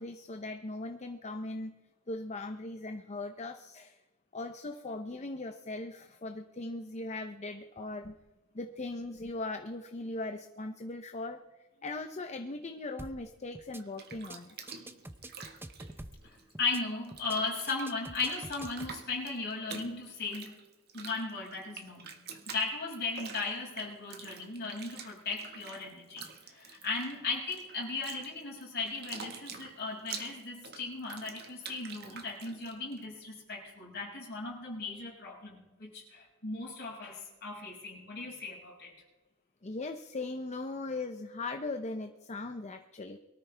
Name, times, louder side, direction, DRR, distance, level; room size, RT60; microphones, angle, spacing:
voice 1, 0.0-1.8 2.1-4.0 4.3-8.2 8.5-11.4 11.8-14.9 39.6-43.2, left 2 dB, 30° left, 6 dB, 0.7 m, -39 dB
sound 1, 13.0-13.3 13.5-13.8 14.1-14.4 14.7-16.3 16.5-16.8 17.1-17.4 17.7-19.0, right 1 dB, 10° right, 0.6 m, -46 dB
Bathtub (filling or washing), 13.7-16.8 17.0-33.0, right 6 dB, 50° right, 1.6 m, -47 dB
voice 2, 16.2-20.6 20.9-22.1 22.5-38.9, left 3 dB, 50° left, -3 dB, 6.1 m, -37 dB
23.5 x 13.5 x 3.4 m, 1.2 s
head